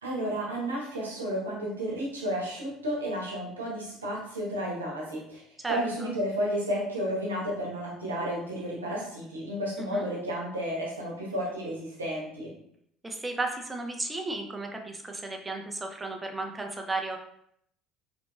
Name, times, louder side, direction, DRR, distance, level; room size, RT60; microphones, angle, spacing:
voice 1, 0.0-5.4 5.7-12.5, equal, 80° right, -4 dB, 0.9 m, -32 dB
voice 2, 13.0-17.2, right 2 dB, 15° right, 3 dB, 0.6 m, -34 dB
3.9 x 3.2 x 2.2 m, 0.70 s
figure-of-eight pair, 60°, 0 cm